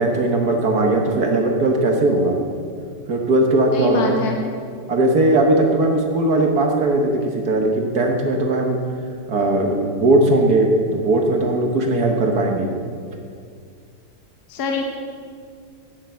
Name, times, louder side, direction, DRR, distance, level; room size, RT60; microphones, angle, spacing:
voice 1, 0.0-2.4 3.1-4.2 4.9-8.8 9.3-10.7 10.9-12.7, right 2 dB, 60° right, 2 dB, 1.6 m, -18 dB
voice 2, 3.7-4.4 14.5-14.8, left 4 dB, 60° left, 2 dB, 1.6 m, -24 dB
12.0 x 9.3 x 7.5 m, 2.2 s
omnidirectional pair, 2.0 m